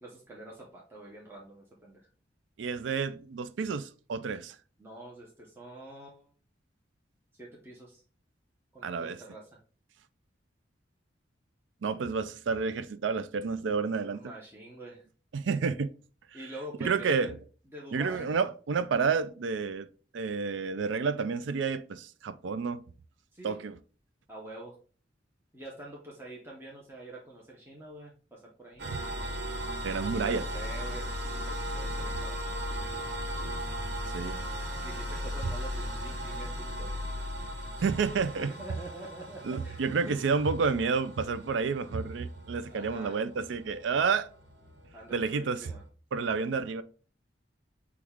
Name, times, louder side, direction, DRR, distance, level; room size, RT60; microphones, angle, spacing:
voice 1, 0.0-2.1 4.8-6.3 7.3-8.0 8.7-9.5 14.0-15.0 16.3-17.3 17.7-18.3 23.3-23.5 24.3-24.8 25.5-28.9 30.0-33.1 34.8-36.9 37.8-37.9 38.4-40.2 42.7-43.2 44.9-45.8, right 1 dB, 15° right, 0.8 m, -46 dB
voice 2, 2.6-4.6 8.8-9.2 11.8-14.2 15.3-15.9 16.8-17.3 17.9-19.9 20.1-22.8 23.4-23.8 28.8-29.0 29.8-30.4 34.1-34.4 37.8-38.5 39.4-44.3 45.1-45.7 46.1-46.8, right 5 dB, 75° right, 0.4 m, -30 dB
sound 1, 28.8-38.4, left 2 dB, 45° left, 0.6 m, -38 dB
sound 2, 28.8-45.9, right 2 dB, 60° right, 1.4 m, -40 dB
6.2 x 2.3 x 3.5 m
head